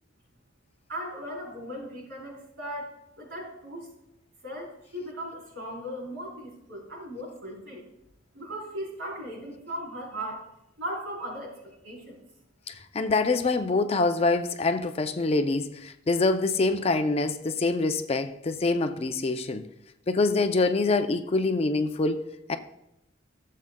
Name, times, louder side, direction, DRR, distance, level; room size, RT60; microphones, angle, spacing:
voice 1, 0.9-3.9 4.4-7.8 8.3-10.5 10.8-12.2, equal, 75° right, 3.9 m, -38 dB
voice 2, 12.7-19.7 20.1-22.6, left 3 dB, 30° left, 0.4 m, -25 dB
15.5 x 7.5 x 2.2 m
head